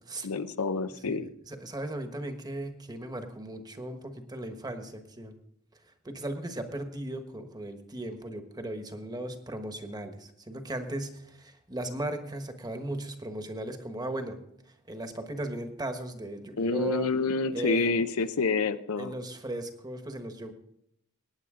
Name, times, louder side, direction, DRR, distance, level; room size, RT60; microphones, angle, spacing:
voice 1, 0.2-1.3 16.6-19.1, left 4 dB, 90° left, 12 dB, 0.7 m, -28 dB
voice 2, 1.0-5.4 5.9-14.4 14.9-17.1 17.5-18.0 19.0-20.5, right 1 dB, 20° right, 7 dB, 1.2 m, -37 dB
18.5 x 9.6 x 3.7 m, 0.74 s
head